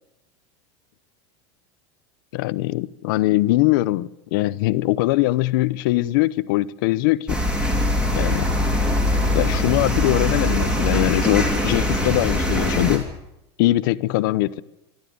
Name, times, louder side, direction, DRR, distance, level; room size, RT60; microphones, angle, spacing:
voice 1, 2.3-7.4 8.1-8.5 9.3-13.1 13.6-14.6, left 17 dB, 50° left, 0.8 m, -21 dB
sound 1, 7.3-13.0, left 1 dB, 5° right, 3.2 m, -22 dB
26.0 x 12.5 x 9.5 m
supercardioid pair, 180°, 15 cm